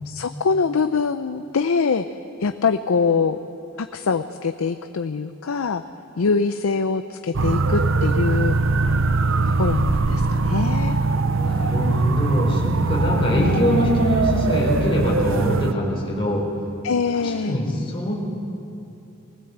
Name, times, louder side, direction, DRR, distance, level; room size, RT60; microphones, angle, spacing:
voice 1, 0.1-2.1 2.4-3.4 3.8-5.8 6.2-8.6 9.6-11.0 13.3-13.8 16.8-17.6, left 5 dB, 85° left, 9 dB, 0.6 m, -23 dB
sound 1, 7.3-15.7, right 3 dB, 65° right, 0.7 m, -21 dB
voice 2, 11.3-16.5 17.1-18.1, left 1 dB, 25° left, -4 dB, 4.2 m, -23 dB
19.5 x 17.5 x 8.0 m, 2.8 s
head